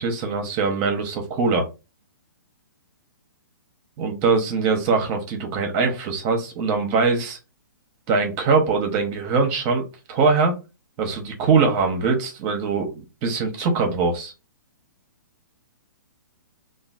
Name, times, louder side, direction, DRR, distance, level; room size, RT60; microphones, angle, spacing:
voice 1, 0.0-1.7 4.0-7.4 8.1-10.5 11.0-12.9 13.2-14.3, right 4 dB, 30° right, 0.8 m, -22 dB
3.1 x 2.4 x 2.4 m
hypercardioid pair, 135°, 11 cm